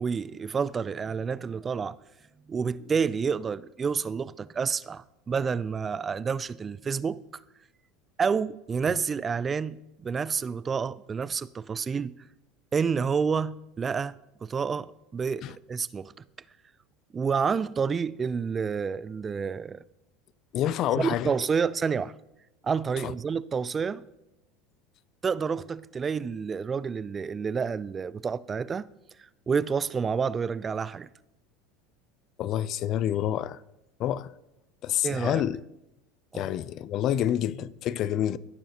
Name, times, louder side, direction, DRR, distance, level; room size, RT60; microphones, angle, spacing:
voice 1, 0.0-2.0 2.5-7.2 8.2-12.1 12.7-16.1 17.1-19.8 20.9-22.1 22.6-24.0 25.2-28.9 29.5-31.1 35.0-35.4 36.3-36.5, right 6 dB, 25° right, 0.3 m, -29 dB
voice 2, 20.5-21.3 23.0-23.1 32.4-33.6 34.0-34.3 34.8-35.6 36.3-38.4, left 11 dB, 50° left, 0.3 m, -28 dB
17.0 x 6.3 x 2.8 m
hypercardioid pair, 90°, 0 cm